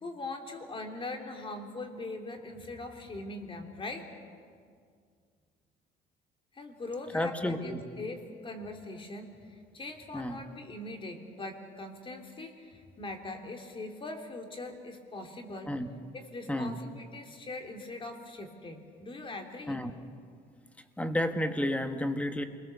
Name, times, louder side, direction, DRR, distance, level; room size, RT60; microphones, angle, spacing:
voice 1, 0.0-4.1 6.5-15.7 16.1-19.8, left 2 dB, 30° left, 4 dB, 3.1 m, -41 dB
voice 2, 7.1-7.8 10.1-10.4 15.7-15.9 16.5-16.8 19.7-19.9 21.0-22.4, left 1 dB, 10° left, 7 dB, 1.7 m, -31 dB
28.0 x 21.5 x 7.0 m, 2.1 s
cardioid pair, 110°, 17 cm